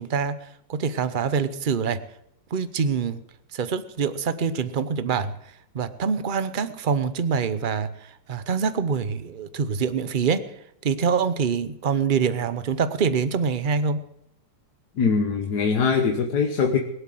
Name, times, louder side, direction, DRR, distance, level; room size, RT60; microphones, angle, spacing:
voice 1, 0.0-2.0 2.5-3.2 3.5-14.0, right 6 dB, 75° right, 12 dB, 0.4 m, -25 dB
voice 2, 15.0-16.8, left 5 dB, 55° left, 4 dB, 1.6 m, -22 dB
21.5 x 8.1 x 7.7 m, 0.79 s
omnidirectional pair, 2.2 m